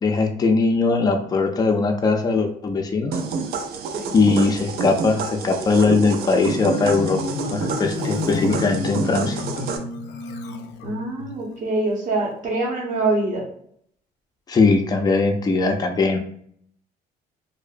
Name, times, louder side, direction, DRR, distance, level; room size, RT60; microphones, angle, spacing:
voice 1, 0.0-3.2 4.1-7.2 7.5-9.4 14.5-16.2, left 3 dB, 25° left, 4 dB, 0.4 m, -20 dB
sound 1, 3.1-9.8, right 5 dB, 70° right, 0.4 m, -29 dB
Marimba xylophone, 6.2-11.3, left 3 dB, 85° left, 0.4 m, -30 dB
voice 2, 10.8-13.4, right 2 dB, 50° right, -1 dB, 0.9 m, -24 dB
2.6 x 2.0 x 2.4 m, 0.64 s
cardioid pair, 110°, 17 cm